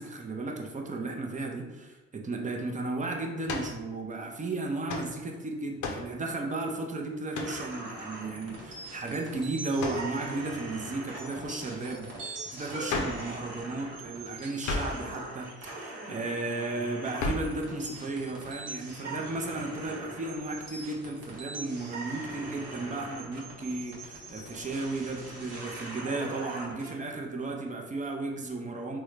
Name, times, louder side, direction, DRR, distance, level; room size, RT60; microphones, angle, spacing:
voice 1, 0.0-29.0, right 2 dB, 25° right, 1 dB, 0.5 m, -34 dB
sound 1, 3.5-3.8 4.9-5.1 5.8-6.1 7.3-7.6 9.8-10.1 12.9-13.3 14.6-15.0 17.2-17.6, left 3 dB, 75° left, 0.6 m, -32 dB
sound 2, 7.4-26.9, right 2 dB, 60° right, 1.0 m, -42 dB
3.5 x 2.1 x 3.2 m, 1.2 s
cardioid pair, 90°, 30 cm